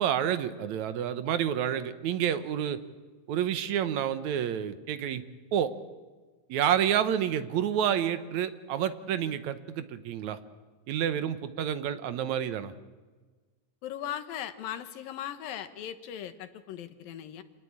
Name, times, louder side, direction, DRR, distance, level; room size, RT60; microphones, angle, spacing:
voice 1, 0.0-2.8 3.3-5.2 5.5-5.7 6.5-10.4 10.9-12.7, right 9 dB, 65° right, 12 dB, 2.1 m, -29 dB
voice 2, 13.8-17.4, left 10 dB, 85° left, 10 dB, 3.1 m, -38 dB
27.0 x 19.5 x 8.7 m, 1.3 s
omnidirectional pair, 4.0 m